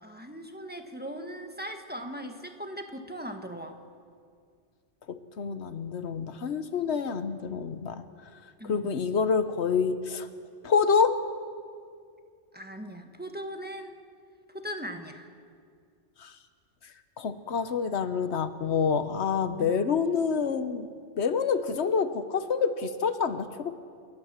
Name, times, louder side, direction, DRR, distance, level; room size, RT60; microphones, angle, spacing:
voice 1, 0.0-3.8 8.6-8.9 12.5-14.0 14.5-15.3 19.6-19.7, equal, 10° right, 5 dB, 1.3 m, -39 dB
voice 2, 5.1-8.0 8.6-10.3 10.6-11.2 16.2-16.3 17.2-20.9 21.2-23.7, left 6 dB, 70° left, 11 dB, 1.2 m, -27 dB
28.5 x 12.5 x 7.4 m, 2.2 s
omnidirectional pair, 1.2 m